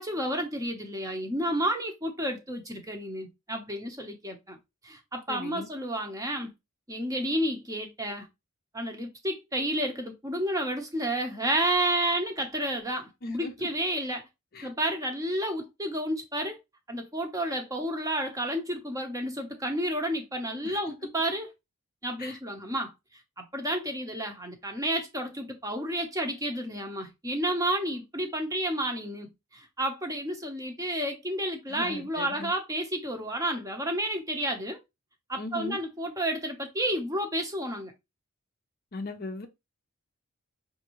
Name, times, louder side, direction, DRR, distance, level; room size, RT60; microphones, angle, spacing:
voice 1, 0.0-4.6 4.8-6.5 6.9-8.3 8.7-14.2 14.6-16.6 16.9-21.5 22.0-22.9 23.4-34.8 35.3-37.9, right 1 dB, 15° right, 0.8 m, -31 dB
voice 2, 5.3-5.7 13.2-13.7 14.5-14.7 20.6-20.8 22.2-22.4 31.7-32.5 35.4-35.8 38.9-39.5, left 2 dB, 45° left, 0.6 m, -38 dB
5.8 x 2.6 x 3.0 m
head